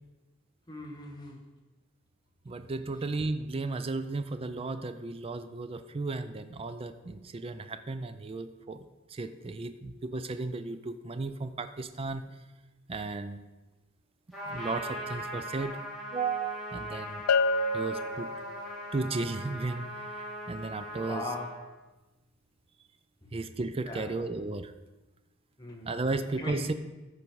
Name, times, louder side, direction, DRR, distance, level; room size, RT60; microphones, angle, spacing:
voice 1, 0.7-1.4 21.1-21.5 23.2-23.3 23.9-24.1 25.6-26.7, left 2 dB, 20° left, 0 dB, 1.4 m, -39 dB
voice 2, 2.5-12.3 12.9-13.4 14.4-15.8 16.1-17.2 17.7-18.3 18.9-21.2 23.3-24.7 25.9-26.7, right 3 dB, 25° right, 10 dB, 0.4 m, -34 dB
Trumpet, 14.3-21.5, equal, ahead, 2.6 m, -40 dB
Bell, 17.3-18.9, left 3 dB, 90° left, 0.4 m, -28 dB
13.5 x 5.0 x 4.6 m, 1.1 s
head